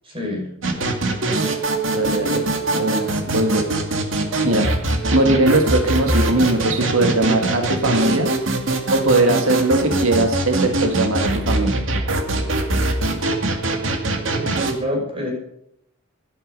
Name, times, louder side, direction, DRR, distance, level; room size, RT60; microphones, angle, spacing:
voice 1, 0.0-0.5 14.4-15.3, left 1 dB, 25° right, 0 dB, 6.1 m, -27 dB
sound 1, 0.6-14.7, right 2 dB, 65° right, 2.4 m, -22 dB
voice 2, 1.9-2.4 2.7-3.7 4.4-4.7 5.1-8.3 8.9-11.8, right 2 dB, 80° right, 3 dB, 2.0 m, -20 dB
17.0 x 12.0 x 5.4 m, 0.74 s
head